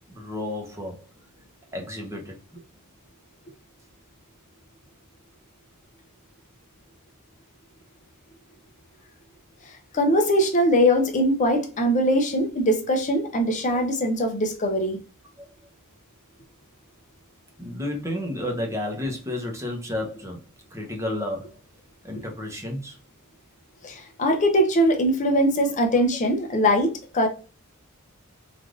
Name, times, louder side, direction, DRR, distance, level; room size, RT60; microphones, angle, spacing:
voice 1, 0.1-1.0 1.7-2.4 17.6-20.4 20.7-21.5 22.0-23.0, left 1 dB, 15° right, 0.7 m, -31 dB
voice 2, 9.9-15.0 23.8-27.3, equal, 35° left, 0.5 m, -21 dB
3.3 x 2.5 x 2.4 m
head